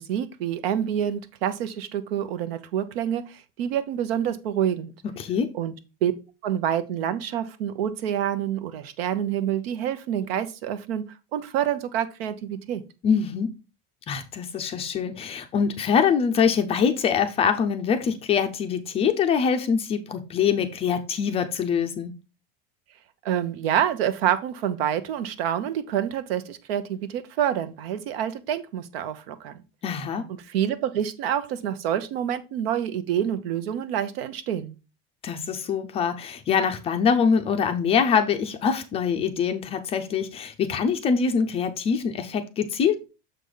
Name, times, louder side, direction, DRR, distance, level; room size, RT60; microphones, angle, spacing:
voice 1, 0.0-4.9 5.5-5.7 6.0-6.1 6.4-12.8 23.2-29.5 30.5-34.7, right 10 dB, 70° right, 1.0 m, -27 dB
voice 2, 5.2-5.5 13.0-13.5 14.1-22.1 29.8-30.3 35.2-43.0, left 6 dB, 20° left, 0.4 m, -24 dB
6.8 x 4.9 x 3.8 m
supercardioid pair, 160°, 30 cm